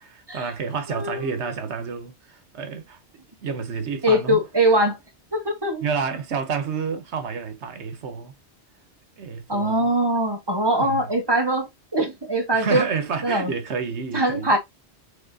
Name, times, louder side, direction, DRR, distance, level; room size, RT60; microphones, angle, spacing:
voice 1, 0.0-3.0 3.4-4.4 5.8-8.3 9.2-9.9 10.8-11.1 12.5-14.5, right 5 dB, 85° right, 1.2 m, -29 dB
voice 2, 0.9-1.3 4.0-5.0 5.3-5.8 9.5-12.9 13.2-13.5 14.1-14.6, right 1 dB, 20° right, 1.4 m, -22 dB
5.8 x 3.4 x 2.7 m
omnidirectional pair, 1.1 m